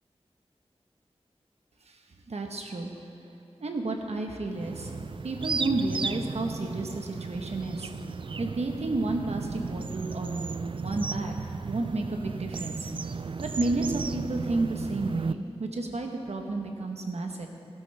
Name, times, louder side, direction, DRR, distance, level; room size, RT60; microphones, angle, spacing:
voice 1, 2.3-2.9 3.6-4.9 5.2-7.9 8.4-11.3 11.6-12.9 13.4-17.5, right 2 dB, 80° right, 3 dB, 1.2 m, -31 dB
sound 1, 4.5-15.3, right 4 dB, 50° right, 0.4 m, -35 dB
16.0 x 12.0 x 3.4 m, 2.7 s
wide cardioid pair, 70°, 11 cm